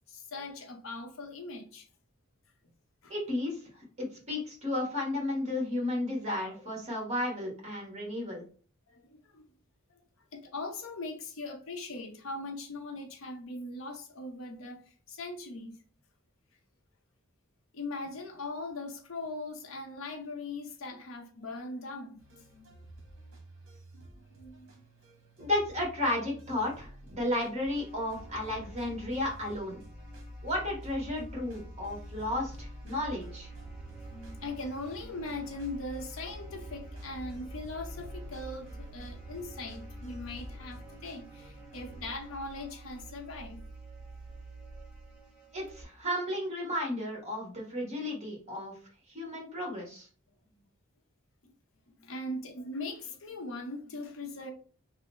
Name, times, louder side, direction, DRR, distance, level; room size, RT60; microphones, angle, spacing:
voice 1, 0.1-1.9 3.0-3.1 8.9-9.5 9.9-10.0 10.3-15.8 17.7-22.8 23.9-24.8 28.5-28.6 32.9-33.0 34.1-43.6 50.5-50.6 51.4-51.5 52.0-54.5, left 2 dB, 75° left, 0.7 m, -40 dB
voice 2, 3.1-3.6 4.0-8.4 25.4-29.8 30.4-33.5 45.5-48.8 49.1-50.1, left 1 dB, 35° right, 1.3 m, -33 dB
sound 1, 22.2-42.1, right 2 dB, 70° right, 0.9 m, -52 dB
sound 2, 27.7-45.8, equal, 5° right, 1.2 m, -47 dB
3.1 x 2.0 x 4.0 m
head